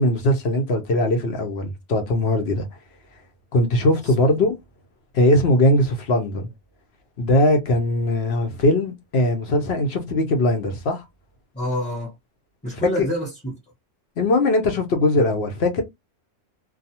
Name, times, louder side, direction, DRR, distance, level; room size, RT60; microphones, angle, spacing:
voice 1, 0.0-2.7 3.5-4.6 5.1-6.5 7.2-11.0 14.2-15.8, left 1 dB, 65° left, 0.9 m, -20 dB
voice 2, 4.0-4.4 11.5-12.1 12.6-13.5, equal, 5° left, 0.7 m, -28 dB
2.4 x 2.3 x 2.8 m
omnidirectional pair, 1.3 m